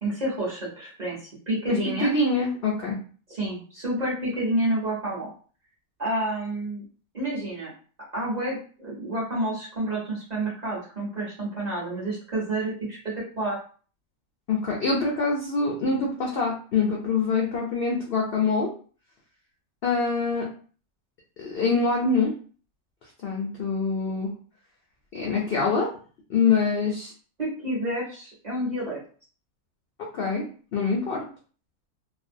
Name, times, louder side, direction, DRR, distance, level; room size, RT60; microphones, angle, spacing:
voice 1, 0.0-2.1 3.3-5.3 6.0-6.8 7.1-7.7 8.1-13.0 13.4-13.6 27.4-29.0, right 1 dB, 40° right, -7 dB, 0.7 m, -29 dB
voice 2, 1.7-3.0 14.5-18.7 19.8-20.5 21.4-22.3 23.2-24.3 25.1-25.9 26.3-27.1 30.1-30.4 30.7-31.2, left 4 dB, 65° left, -2 dB, 0.5 m, -25 dB
2.5 x 2.0 x 2.5 m, 0.41 s
omnidirectional pair, 1.5 m